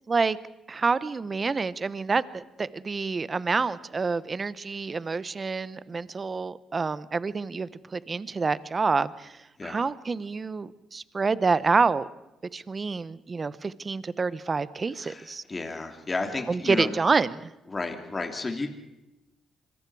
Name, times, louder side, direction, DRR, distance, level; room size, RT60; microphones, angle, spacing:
voice 1, 0.7-12.1 12.5-15.4 16.5-17.5, right 4 dB, 35° right, 17 dB, 0.9 m, -27 dB
voice 2, 15.0-16.9 17.7-18.7, left 3 dB, 25° left, 4 dB, 2.8 m, -32 dB
26.0 x 21.5 x 4.8 m, 0.96 s
cardioid pair, 90°, 0 cm